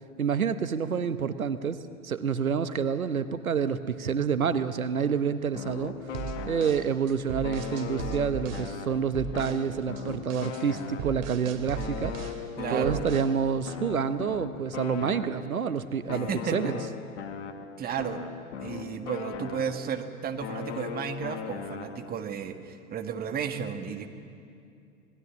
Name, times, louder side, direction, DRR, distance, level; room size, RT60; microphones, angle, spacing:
voice 1, 0.2-5.9 6.5-12.1 12.7-16.8, right 6 dB, 80° right, 12 dB, 1.0 m, -28 dB
sound 1, 5.5-7.1 7.4-11.4 11.8-15.7 16.1-20.0 20.4-22.2, left 7 dB, 55° left, 1.8 m, -39 dB
sound 2, 6.1-8.7 9.1-9.6 10.0-12.4 12.8-13.4, right 7 dB, 45° right, 2.6 m, -37 dB
voice 2, 12.6-13.0 16.1-16.7 17.8-18.2 18.6-24.1, right 7 dB, 20° right, 7 dB, 1.6 m, -33 dB
26.5 x 20.0 x 7.4 m, 2.5 s
figure-of-eight pair, 100°, 41 cm